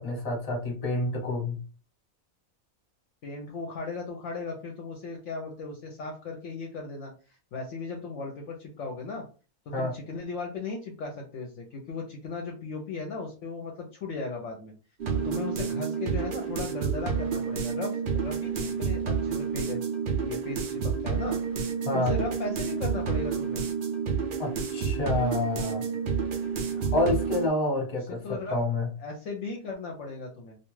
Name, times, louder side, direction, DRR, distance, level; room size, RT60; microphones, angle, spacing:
voice 1, 0.0-1.6 9.7-9.9 21.8-22.1 24.4-25.9 26.7-28.2 28.5-28.9, left 2 dB, 30° left, -1 dB, 1.0 m, -28 dB
voice 2, 3.2-7.1 7.5-9.2 9.7-14.7 15.2-19.8 20.2-21.7 21.9-23.6 28.1-28.6 29.0-30.6, left 3 dB, 65° left, 1 dB, 0.9 m, -37 dB
sound 1, 15.0-27.5, right 6 dB, 70° right, 0.5 m, -29 dB
2.5 x 2.3 x 3.1 m, 0.35 s
omnidirectional pair, 1.5 m